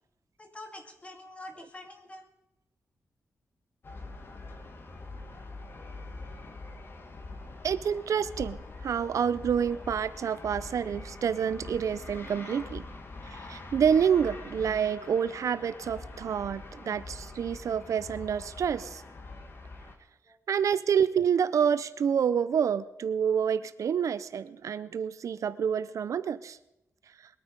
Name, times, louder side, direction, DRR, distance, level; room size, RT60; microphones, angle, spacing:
voice 1, 0.4-2.3 20.2-20.4, left 1 dB, 20° left, 3 dB, 2.2 m, -46 dB
sound 1, 3.8-19.9, left 3 dB, 45° left, 1.9 m, -44 dB
voice 2, 7.6-8.6 8.8-12.8 13.3-19.0 20.5-26.6, right 7 dB, 75° right, 15 dB, 0.6 m, -28 dB
21.5 x 9.1 x 5.2 m, 0.86 s
wide cardioid pair, 140°, 6 cm